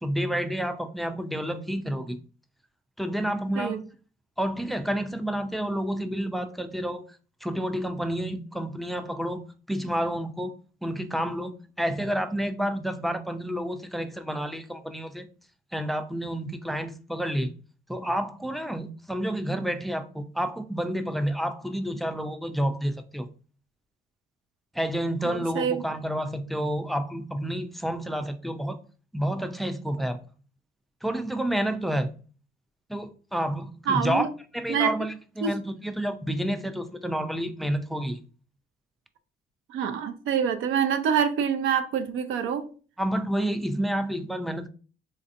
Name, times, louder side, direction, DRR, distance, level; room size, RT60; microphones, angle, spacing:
voice 1, 0.0-2.2 3.0-3.8 4.4-7.0 7.4-10.5 10.8-15.3 15.7-17.5 17.9-23.3 24.7-28.8 29.1-30.2 31.0-32.1 32.9-34.3 34.5-38.2 43.0-44.7, equal, ahead, 0.3 m, -29 dB
voice 2, 25.2-25.8 33.9-34.3 34.7-34.9 35.4-35.5 39.7-42.7, right 7 dB, 80° right, 0.5 m, -26 dB
4.1 x 2.5 x 2.5 m
cardioid pair, 90°, 20 cm